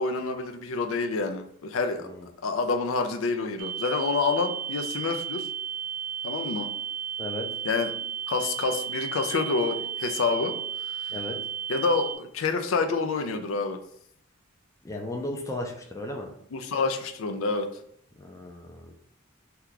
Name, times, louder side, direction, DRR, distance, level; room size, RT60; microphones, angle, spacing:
voice 1, 0.0-2.1 2.4-5.5 6.2-6.7 7.6-7.9 8.3-10.5 10.8-11.1 11.7-13.8 16.5-17.8, left 4 dB, 80° left, 6 dB, 0.4 m, -28 dB
sound 1, 3.6-12.2, right 8 dB, 75° right, 0.3 m, -34 dB
voice 2, 14.8-16.3 18.2-18.9, left 1 dB, 15° left, 1 dB, 0.4 m, -35 dB
2.9 x 2.2 x 3.7 m, 0.67 s
head